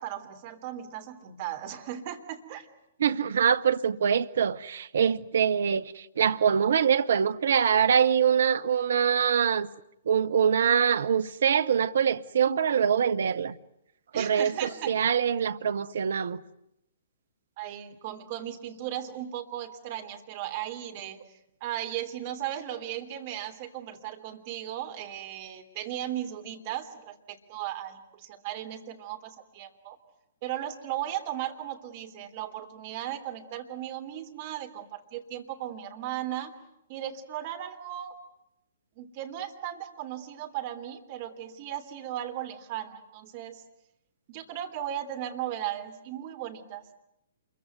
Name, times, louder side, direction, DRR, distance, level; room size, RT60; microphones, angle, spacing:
voice 1, 0.0-2.7 14.1-14.9 17.6-21.2 21.6-30.0 30.4-36.5 36.9-38.1 39.0-43.6 44.3-46.8, right 12 dB, 40° right, 3.2 m, -36 dB
voice 2, 3.0-9.7 10.1-13.6 14.2-16.4, right 7 dB, 60° right, 1.0 m, -24 dB
27.5 x 23.0 x 9.3 m
figure-of-eight pair, 120°, 0 cm